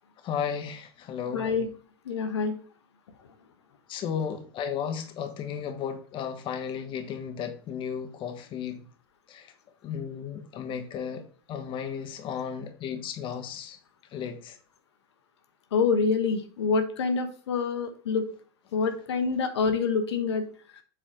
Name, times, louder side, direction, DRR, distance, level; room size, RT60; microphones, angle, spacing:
voice 1, 0.2-1.5 3.9-8.8 9.3-9.5 9.8-11.2 11.5-13.8 14.1-14.6, left 7 dB, 40° left, 1.3 m, -34 dB
voice 2, 1.3-1.7 2.1-2.5 15.7-18.2 18.7-20.4, left 5 dB, 80° left, 1.1 m, -26 dB
7.9 x 4.1 x 3.8 m
hypercardioid pair, 110°, 14 cm